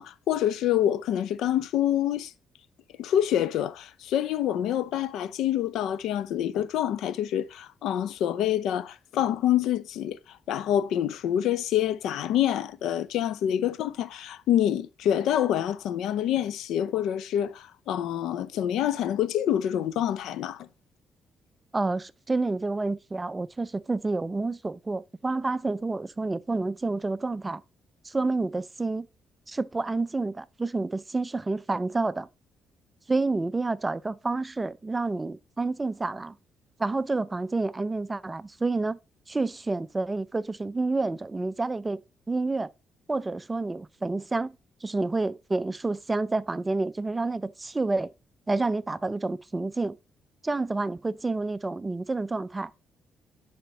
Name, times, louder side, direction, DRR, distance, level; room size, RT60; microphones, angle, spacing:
voice 1, 0.0-2.3 3.0-10.2 10.5-20.7, left 11 dB, 85° left, 0.4 m, -26 dB
voice 2, 21.7-27.6 28.0-29.1 29.5-32.3 33.1-36.3 36.8-39.0 39.3-42.0 42.3-42.7 43.1-44.5 44.8-48.1 48.5-50.0 50.4-52.7, right 3 dB, 20° right, 0.3 m, -29 dB
10.0 x 4.3 x 2.8 m
cardioid pair, 90°, 0 cm